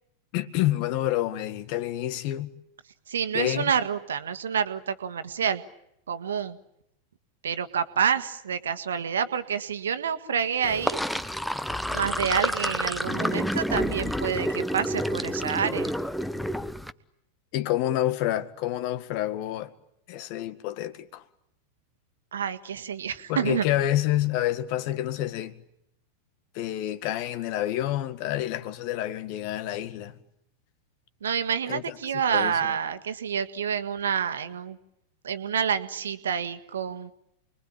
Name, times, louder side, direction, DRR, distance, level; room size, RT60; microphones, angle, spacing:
voice 1, 0.3-2.5 3.3-3.7 17.5-19.7 20.1-21.2 23.3-25.6 26.5-30.2 31.7-32.0 32.3-32.7, left 13 dB, 45° left, 1.8 m, -28 dB
voice 2, 3.1-5.6 6.1-6.6 7.4-11.0 11.9-15.9 22.3-23.6 31.2-34.8 35.2-37.1, right 7 dB, 65° right, 1.8 m, -28 dB
Sink (filling or washing), 10.6-16.9, equal, ahead, 1.1 m, -29 dB
29.0 x 22.5 x 8.7 m
figure-of-eight pair, 90°, 0 cm